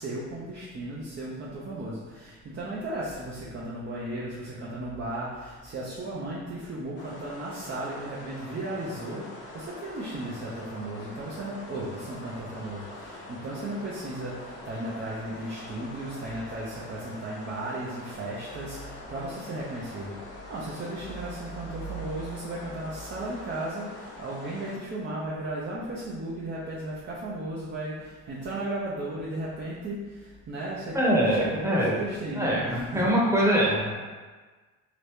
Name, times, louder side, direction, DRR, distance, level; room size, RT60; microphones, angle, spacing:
voice 1, 0.0-31.0 31.2-33.1, right 1 dB, 40° right, -6 dB, 0.6 m, -35 dB
sound 1, 7.0-24.8, left 2 dB, 85° left, 0.7 m, -44 dB
voice 2, 30.9-32.0 32.3-33.9, equal, 10° right, -5 dB, 0.9 m, -23 dB
2.9 x 2.6 x 3.4 m, 1.4 s
cardioid pair, 90°, 30 cm